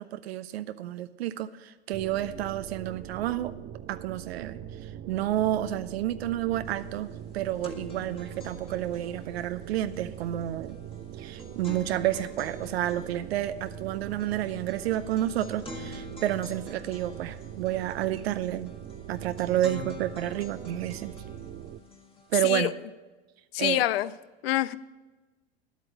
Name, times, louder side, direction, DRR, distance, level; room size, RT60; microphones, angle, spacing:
voice 1, 0.0-3.5 3.9-4.6 5.1-10.8 11.2-18.7 19.1-21.1 22.3-22.7 23.6-23.8, right 13 dB, 75° right, 12 dB, 0.6 m, -30 dB
sound 1, 1.9-21.8, right 10 dB, 30° right, 0.5 m, -42 dB
sound 2, 6.7-6.8 7.1-22.6, left 2 dB, 15° left, 1.6 m, -47 dB
voice 2, 23.5-24.1 24.4-24.8, left 15 dB, 70° left, 17 dB, 0.6 m, -26 dB
10.5 x 8.3 x 6.3 m, 1.2 s
hypercardioid pair, 100°, 31 cm